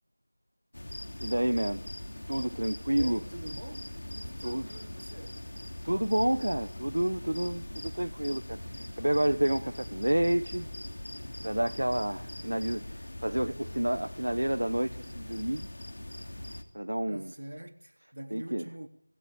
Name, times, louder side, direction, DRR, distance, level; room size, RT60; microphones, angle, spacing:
sound 1, 0.7-16.6, left 1 dB, 45° left, 2.9 m, -41 dB
voice 1, 1.2-1.8 2.3-3.2 4.4-4.8 5.8-10.7 11.4-15.7 16.7-17.3 18.3-18.7, right 1 dB, 75° right, 1.4 m, -29 dB
voice 2, 2.9-5.4 17.1-18.9, right 1 dB, 55° right, 3.4 m, -45 dB
28.5 x 20.0 x 9.9 m
figure-of-eight pair, 180°, 0 cm